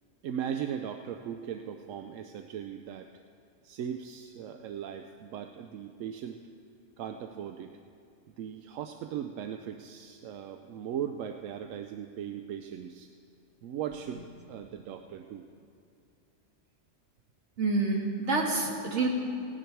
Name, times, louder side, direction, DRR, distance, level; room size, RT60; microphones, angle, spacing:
voice 1, 0.2-3.1 3.6-6.5 7.0-7.8 8.4-13.1 13.6-14.2 14.5-15.4, right 9 dB, 85° right, 6 dB, 1.0 m, -38 dB
voice 2, 17.6-19.1, right 3 dB, 65° right, 0 dB, 1.9 m, -27 dB
16.5 x 10.0 x 4.6 m, 2.5 s
omnidirectional pair, 1.3 m